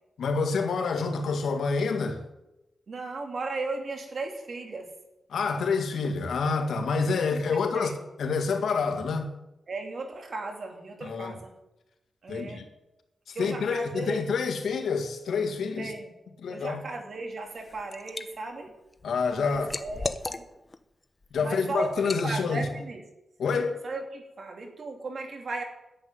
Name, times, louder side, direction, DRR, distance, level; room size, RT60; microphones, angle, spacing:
voice 1, 0.2-2.2 5.3-7.9 8.2-9.3 11.0-11.4 12.3-12.6 13.3-15.9 16.4-16.8 19.0-19.7 21.3-22.7 23.4-23.8, left 4 dB, 85° left, 2.1 m, -27 dB
voice 2, 2.9-4.9 7.5-8.0 9.7-11.5 12.2-12.6 13.3-14.2 15.8-16.1 16.5-18.7 19.3-20.4 21.4-23.0 23.8-25.6, right 3 dB, 55° right, 2.8 m, -36 dB
Liquid, 17.4-18.3 18.7-20.8 21.2-21.4 22.0-22.3, left 3 dB, 30° left, 0.9 m, -36 dB
11.0 x 8.0 x 9.8 m
wide cardioid pair, 100°, 0 cm